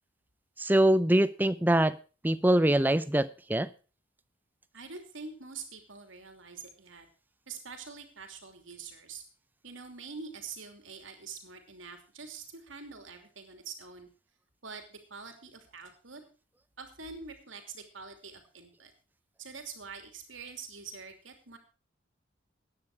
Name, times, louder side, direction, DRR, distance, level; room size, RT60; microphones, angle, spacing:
voice 1, 0.6-2.0 2.2-3.7, right 1 dB, 10° right, 15 dB, 0.5 m, -24 dB
voice 2, 4.7-7.1 7.5-9.2 9.6-14.1 14.6-16.2 16.8-18.9 19.4-21.6, right 5 dB, 80° right, 6 dB, 2.9 m, -45 dB
14.5 x 9.9 x 4.8 m, 0.35 s
head